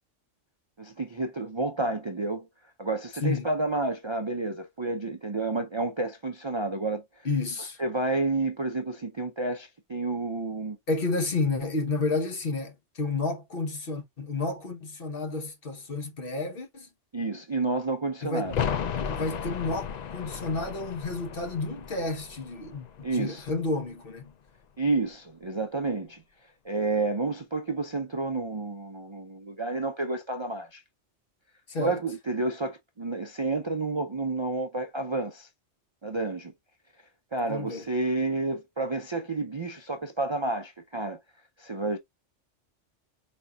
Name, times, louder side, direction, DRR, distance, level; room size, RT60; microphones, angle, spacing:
voice 1, 0.8-2.5 2.8-7.0 7.8-10.8 17.1-18.6 23.0-23.4 24.8-26.2 26.6-30.8 31.8-35.5 36.0-36.5 37.3-41.2 41.6-42.0, right 3 dB, 35° right, 0.5 m, -30 dB
voice 2, 7.2-7.8 10.9-16.9 18.2-18.5 19.0-24.3 31.7-32.0 37.5-37.8, left 3 dB, 50° left, 1.2 m, -31 dB
sound 1, 18.4-24.0 24.3-24.4, left 7 dB, 85° left, 0.3 m, -35 dB
5.2 x 4.3 x 2.3 m
omnidirectional pair, 1.3 m